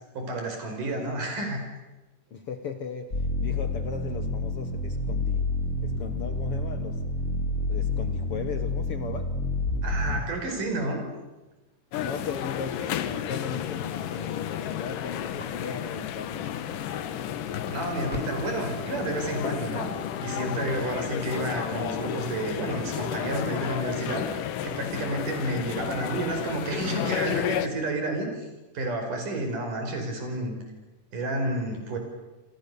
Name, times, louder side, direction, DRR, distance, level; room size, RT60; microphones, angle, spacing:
voice 1, 0.1-1.6 9.8-11.0 17.7-19.9 20.2-28.4 28.7-30.6 31.1-32.0, right 1 dB, 75° right, 6.6 m, -30 dB
voice 2, 2.3-5.5 5.8-7.1 7.7-9.4 12.0-16.6, left 6 dB, 55° left, 1.7 m, -37 dB
sound 1, 3.1-10.2, left 2 dB, 25° left, 2.6 m, -29 dB
sound 2, 11.9-27.7, left 10 dB, 80° left, 2.8 m, -32 dB
sound 3, 12.7-21.2, equal, 5° left, 4.2 m, -49 dB
28.0 x 27.0 x 6.9 m
omnidirectional pair, 3.8 m